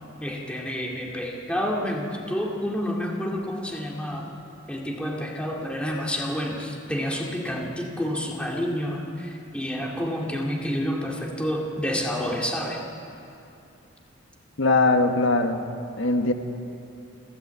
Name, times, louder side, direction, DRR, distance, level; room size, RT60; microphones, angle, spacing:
voice 1, 0.2-4.3 4.7-12.8, equal, 5° left, -1 dB, 2.3 m, -29 dB
voice 2, 14.6-15.6 16.0-16.3, left 2 dB, 75° left, 6 dB, 1.5 m, -21 dB
29.0 x 12.5 x 8.2 m, 2.7 s
head